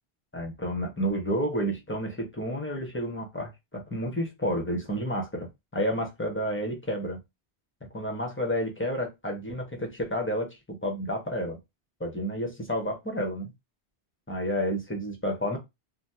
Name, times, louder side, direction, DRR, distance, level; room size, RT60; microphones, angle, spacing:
voice 1, 0.3-7.2 7.9-11.6 12.0-13.5 14.3-15.6, equal, 15° left, 2 dB, 0.6 m, -30 dB
2.7 x 2.1 x 3.2 m, 0.21 s
omnidirectional pair, 1.1 m